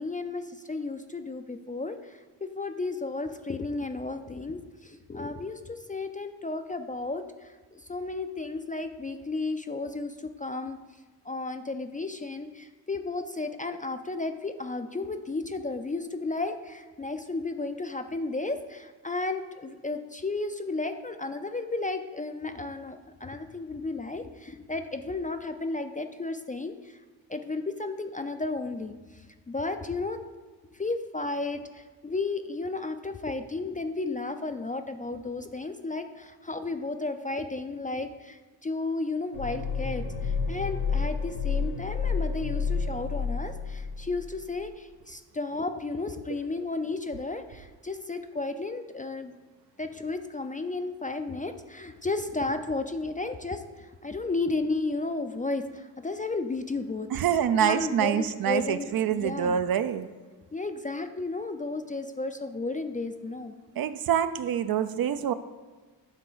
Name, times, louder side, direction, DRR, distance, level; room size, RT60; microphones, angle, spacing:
voice 1, 0.0-10.8 11.2-27.0 27.3-30.2 30.7-49.3 49.8-57.1 57.6-59.6 60.5-63.5, left 3 dB, 20° left, 7 dB, 0.4 m, -33 dB
sound 1, 39.3-44.3 44.6-44.7, left 5 dB, 85° left, 1.2 m, -30 dB
voice 2, 57.1-60.1 63.8-65.3, right 9 dB, 55° right, 12 dB, 0.5 m, -26 dB
8.9 x 3.7 x 4.0 m, 1.4 s
cardioid pair, 65°, 46 cm